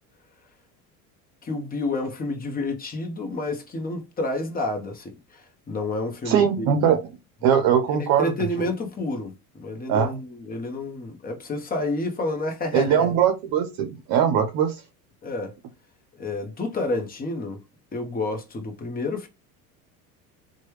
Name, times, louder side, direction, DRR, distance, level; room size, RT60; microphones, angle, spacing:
voice 1, 1.4-6.9 7.6-13.1 15.2-15.5 16.2-17.6 17.9-19.3, left 2 dB, 20° left, 0.9 m, -30 dB
voice 2, 6.3-7.0 7.4-8.3 9.9-10.2 12.7-14.8, right 8 dB, 55° right, 0.7 m, -21 dB
3.1 x 2.3 x 3.0 m
hypercardioid pair, 85°, 43 cm